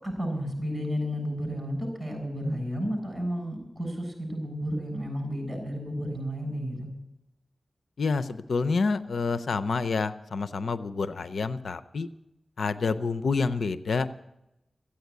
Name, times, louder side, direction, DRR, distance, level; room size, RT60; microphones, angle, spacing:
voice 1, 0.0-6.9, equal, 20° right, 2 dB, 7.4 m, -32 dB
voice 2, 8.0-12.1 12.6-14.1, left 4 dB, 85° left, 12 dB, 0.6 m, -28 dB
14.5 x 8.9 x 9.4 m, 0.87 s
wide cardioid pair, 65°, 0 cm